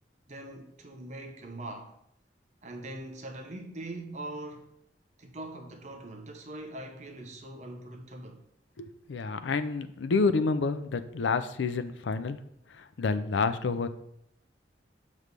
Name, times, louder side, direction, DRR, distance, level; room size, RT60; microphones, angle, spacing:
voice 1, 0.3-2.0 2.6-4.7 5.2-8.4, right 1 dB, 40° right, 0.8 m, -42 dB
voice 2, 8.8-12.4 12.7-13.9, left 4 dB, 85° left, 0.5 m, -29 dB
6.7 x 3.2 x 5.1 m
head